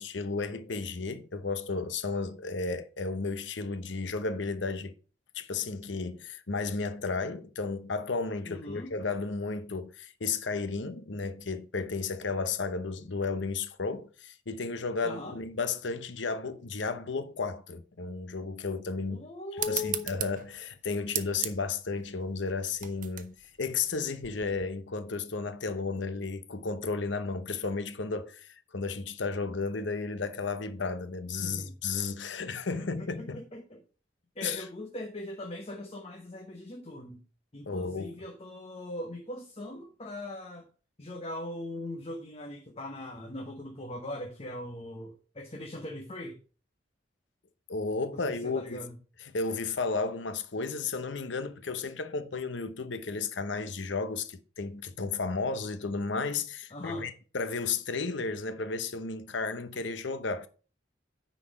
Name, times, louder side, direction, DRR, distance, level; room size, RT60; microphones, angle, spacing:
voice 1, 0.0-4.9 5.3-19.3 19.6-33.4 34.4-34.7 37.7-38.2 47.7-48.9 49.2-60.5, left 4 dB, 70° left, 0.8 m, -33 dB
voice 2, 8.4-8.9 15.0-15.4 19.1-20.1 31.4-31.7 32.8-33.8 34.4-37.2 37.5-40.6 41.0-46.4 48.1-49.0 56.7-57.0, left 2 dB, 30° left, 0.9 m, -40 dB
sound 1, 19.6-24.7, right 11 dB, 45° right, 0.7 m, -38 dB
9.6 x 4.2 x 5.2 m
head